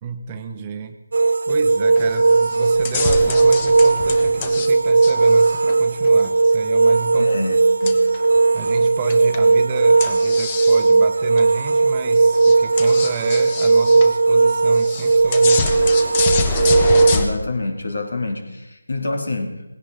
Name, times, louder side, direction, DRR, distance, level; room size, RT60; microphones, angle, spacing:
voice 1, 0.0-1.0 1.5-7.5 8.5-15.8, right 6 dB, 20° right, 8 dB, 0.9 m, -31 dB
sound 1, 1.1-17.2, right 3 dB, 60° right, 0.6 m, -16 dB
sound 2, 2.0-2.2 2.5-4.7 5.0-6.3 7.9-8.4 9.1-9.4 10.0-10.9 11.4-11.5 12.0-12.1 12.3-14.1 14.8-17.3, left 4 dB, 25° left, 1.2 m, -26 dB
voice 2, 7.2-8.0 17.1-19.6, left 2 dB, 65° left, 4 dB, 3.1 m, -27 dB
19.5 x 17.0 x 4.0 m, 0.99 s
figure-of-eight pair, 160°, 0 cm